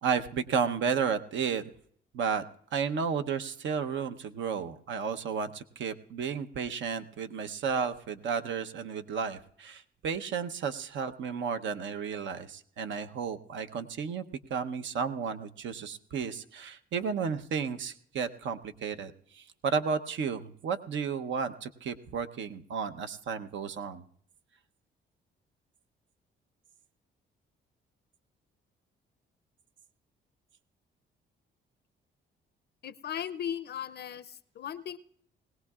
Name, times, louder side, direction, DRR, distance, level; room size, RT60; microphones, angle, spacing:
voice 1, 0.0-1.6 2.1-2.4 2.7-24.0, right 6 dB, 70° right, 8 dB, 0.8 m, -33 dB
voice 2, 32.8-35.0, left 9 dB, 55° left, 14 dB, 0.5 m, -37 dB
20.5 x 17.5 x 2.4 m, 0.62 s
cardioid pair, 90°, 20 cm